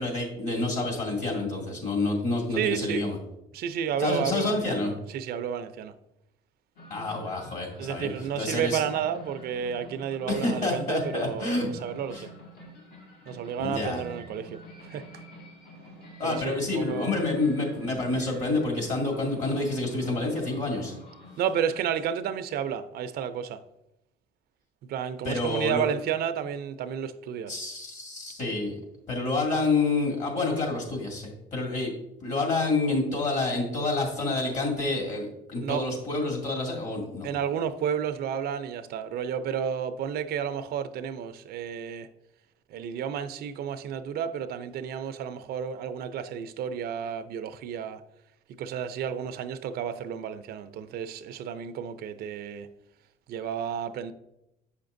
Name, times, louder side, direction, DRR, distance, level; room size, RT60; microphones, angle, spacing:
voice 1, 0.0-3.2 4.0-4.9 6.9-8.1 8.4-8.8 10.3-11.7 12.1-12.3 13.6-14.0 16.2-20.9 25.2-25.9 27.5-28.8 29.1-31.9 32.2-37.3, left 3 dB, 45° left, 2.3 m, -28 dB
voice 2, 2.6-3.1 3.5-5.9 7.8-12.3 13.3-15.2 16.2-17.2 21.4-23.6 24.9-27.6 35.6-35.8 37.2-42.1 42.7-48.0 48.6-52.7 53.3-54.1, right 8 dB, 65° right, 0.5 m, -31 dB
sound 1, 6.8-21.9, equal, 65° left, 1.8 m, -48 dB
8.1 x 5.8 x 2.6 m
cardioid pair, 110°, 17 cm